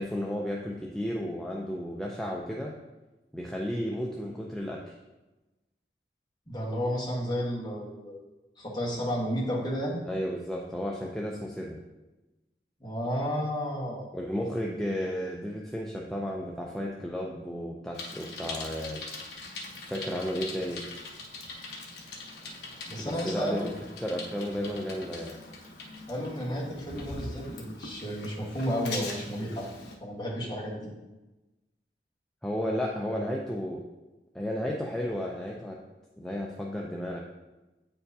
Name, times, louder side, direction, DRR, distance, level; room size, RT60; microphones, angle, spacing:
voice 1, 0.0-2.7 3.3-4.9 10.0-11.8 14.1-19.0 19.8-20.8 23.0-23.7 24.0-25.3 32.4-33.8 34.3-35.8 36.2-37.2, equal, 5° left, -2 dB, 0.4 m, -33 dB
voice 2, 6.5-8.2 8.6-10.0 12.8-14.1 22.9-23.7 26.1-29.7 30.0-30.8, equal, 25° left, -4 dB, 1.3 m, -32 dB
Bicycle, 17.9-30.0, left 3 dB, 75° left, 0.9 m, -42 dB
8.5 x 4.5 x 2.7 m, 1.1 s
head